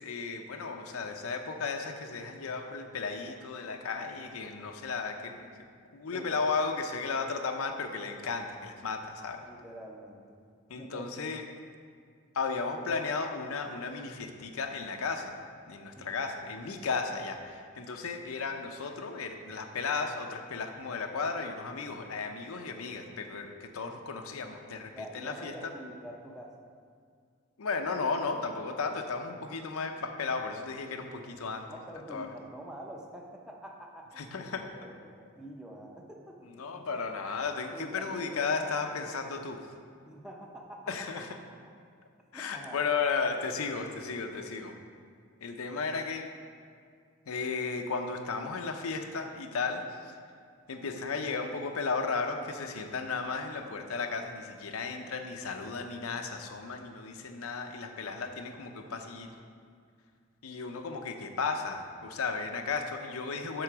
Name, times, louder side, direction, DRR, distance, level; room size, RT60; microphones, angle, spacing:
voice 1, 0.0-5.4 5.9-9.4 10.7-11.4 12.3-15.3 15.7-25.7 27.6-31.7 32.1-32.3 34.2-34.7 36.5-39.6 40.9-41.4 42.3-44.7 45.4-46.3 47.3-49.8 50.7-59.3 60.4-63.6, left 4 dB, 90° left, 5 dB, 0.6 m, -34 dB
voice 2, 9.5-10.4 10.7-11.0 16.0-16.2 24.9-26.5 31.7-37.0 37.6-38.7 40.1-41.1 41.5-41.7 42.3-42.8, right 1 dB, 5° right, -1 dB, 0.5 m, -46 dB
7.9 x 3.8 x 6.0 m, 2.1 s
head